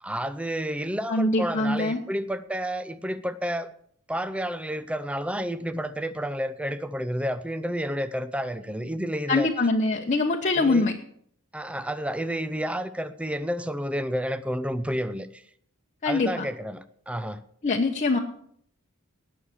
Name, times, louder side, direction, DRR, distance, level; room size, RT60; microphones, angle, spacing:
voice 1, 0.0-3.7 4.1-9.5 9.9-10.1 10.6-10.9 11.5-15.4 16.1-17.4, equal, 5° right, 13 dB, 0.6 m, -30 dB
voice 2, 1.1-2.0 9.3-11.0 16.0-16.5 17.6-18.2, left 3 dB, 35° left, 1 dB, 1.0 m, -23 dB
19.0 x 6.5 x 7.1 m, 0.64 s
head